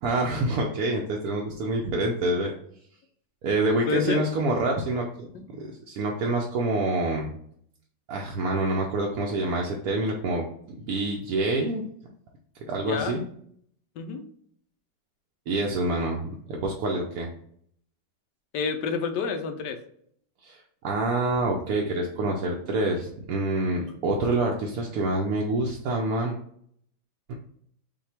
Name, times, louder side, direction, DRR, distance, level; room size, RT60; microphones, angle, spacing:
voice 1, 0.0-2.5 3.4-5.3 5.6-7.3 8.1-10.4 10.8-11.8 12.7-13.2 15.5-16.2 16.5-17.3 20.4-26.3 27.3-27.4, right 2 dB, 70° right, -1 dB, 0.9 m, -26 dB
voice 2, 3.9-4.3 5.3-5.4 12.8-13.2 13.9-14.2 18.5-19.8 23.7-24.0, left 5 dB, 75° left, 6 dB, 1.1 m, -29 dB
5.6 x 2.3 x 3.3 m, 0.65 s
omnidirectional pair, 2.0 m